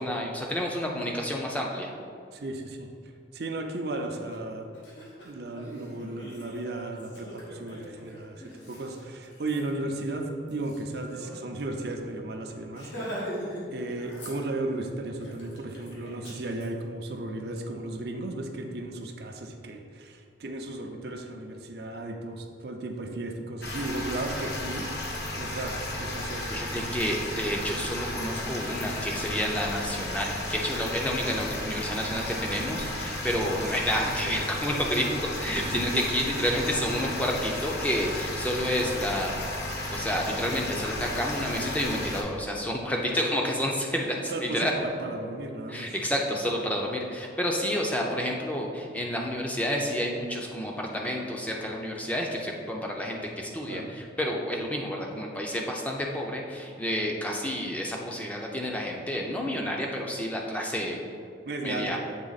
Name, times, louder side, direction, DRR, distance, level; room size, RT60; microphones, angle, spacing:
voice 1, 0.0-1.9 26.5-39.4 39.9-44.7 45.7-61.0 61.6-62.0, equal, 10° left, -1 dB, 0.5 m, -30 dB
voice 2, 2.3-2.9 3.3-4.7 5.2-12.9 13.7-24.9 25.4-27.0 34.2-34.4 35.5-36.0 43.0-43.2 44.3-45.9 53.7-53.9 61.5-62.0, right 2 dB, 60° right, 3 dB, 0.5 m, -35 dB
Laughter, 4.3-4.4 4.7-11.4 11.7-11.8 12.1-12.3 12.7-13.7 13.9-14.8 15.2-16.7, equal, 85° left, 1.4 m, -42 dB
sound 1, 23.6-42.2, left 1 dB, 60° left, 0.9 m, -34 dB
7.4 x 3.5 x 4.0 m, 2.3 s
head